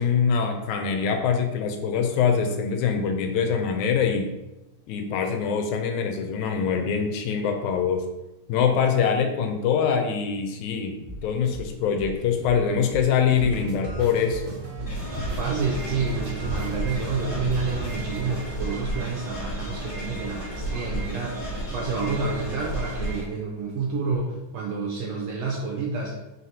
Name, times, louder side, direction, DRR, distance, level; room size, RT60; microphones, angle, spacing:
voice 1, 0.0-4.3 4.9-8.0 8.5-10.9 11.2-14.6, left 6 dB, 80° left, 4 dB, 1.9 m, -24 dB
sound 1, 11.0-20.6, equal, 55° left, 1.2 m, -41 dB
sound 2, 13.4-18.5, right 2 dB, 60° right, 1.3 m, -36 dB
sound 3, 14.9-23.3, right 1 dB, 35° left, 1.3 m, -32 dB
voice 2, 15.4-26.2, right 4 dB, 80° right, -1 dB, 1.5 m, -29 dB
4.5 x 4.1 x 2.7 m, 0.97 s
omnidirectional pair, 3.4 m